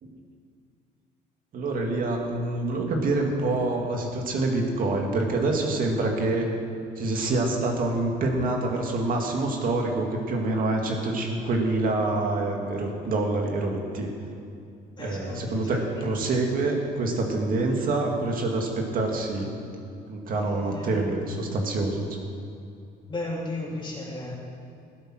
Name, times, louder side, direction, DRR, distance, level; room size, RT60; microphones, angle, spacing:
voice 1, 1.5-6.5 7.0-14.1 15.0-19.5 20.1-22.1, right 2 dB, 55° right, 1 dB, 2.2 m, -26 dB
voice 2, 15.0-15.4 20.3-21.0 23.1-24.3, left 2 dB, 30° left, -3 dB, 3.2 m, -34 dB
15.0 x 8.3 x 6.3 m, 2.5 s
cardioid pair, 110°, 17 cm